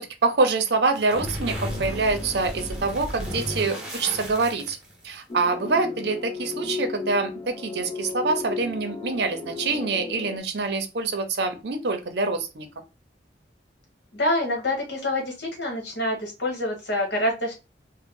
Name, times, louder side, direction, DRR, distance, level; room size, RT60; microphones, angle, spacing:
voice 1, 0.0-4.8 5.0-12.7, right 3 dB, 60° right, 7 dB, 0.7 m, -25 dB
sound 1, 0.9-5.2, equal, 5° right, 0.9 m, -33 dB
sound 2, 5.3-10.4, left 4 dB, 30° left, 0.5 m, -34 dB
voice 2, 14.1-17.5, left 1 dB, 65° left, 1 dB, 1.4 m, -26 dB
3.6 x 2.2 x 3.7 m, 0.28 s
head